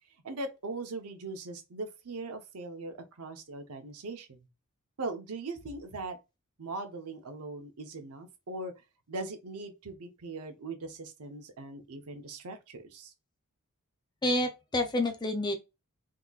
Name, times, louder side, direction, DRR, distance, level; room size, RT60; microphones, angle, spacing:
voice 1, 0.2-4.5 5.0-6.2 6.6-13.1, right 3 dB, 80° right, 0.7 m, -40 dB
voice 2, 14.2-15.6, left 1 dB, 20° left, 0.5 m, -28 dB
3.7 x 2.8 x 2.3 m
head